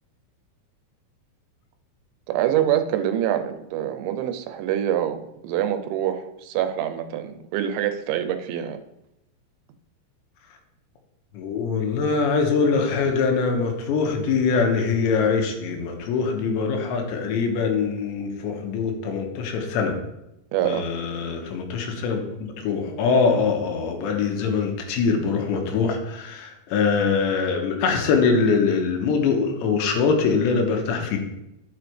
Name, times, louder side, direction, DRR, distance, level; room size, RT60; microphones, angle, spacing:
voice 1, 2.3-8.8 20.5-20.9, right 11 dB, 85° right, 8 dB, 3.0 m, -25 dB
voice 2, 11.3-20.0 20.6-31.2, left 5 dB, 80° left, 3 dB, 3.2 m, -23 dB
10.5 x 6.9 x 3.3 m, 0.88 s
omnidirectional pair, 5.2 m